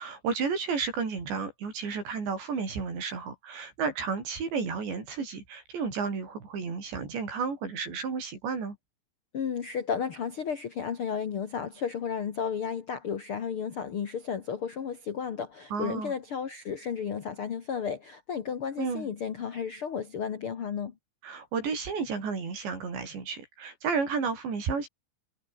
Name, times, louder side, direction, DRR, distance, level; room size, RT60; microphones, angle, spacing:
voice 1, 0.0-8.8 15.7-16.1 18.8-19.1 21.2-24.9, right 5 dB, 80° right, 8.8 m, -32 dB
voice 2, 9.3-20.9, left 7 dB, 90° left, 1.2 m, -33 dB
omnidirectional pair, 5.0 m